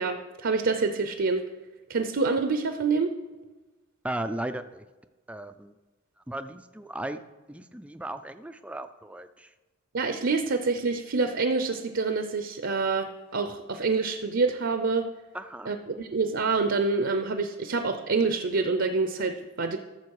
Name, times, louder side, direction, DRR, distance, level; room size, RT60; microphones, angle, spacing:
voice 1, 0.0-1.4 1.9-3.1 9.9-15.1 15.7-19.8, right 4 dB, 60° right, 7 dB, 0.6 m, -27 dB
voice 2, 4.0-4.9 5.3-5.8 6.3-7.2 7.5-9.5 15.3-15.7, right 1 dB, 5° right, 9 dB, 0.3 m, -36 dB
14.0 x 6.8 x 4.7 m, 1.2 s
head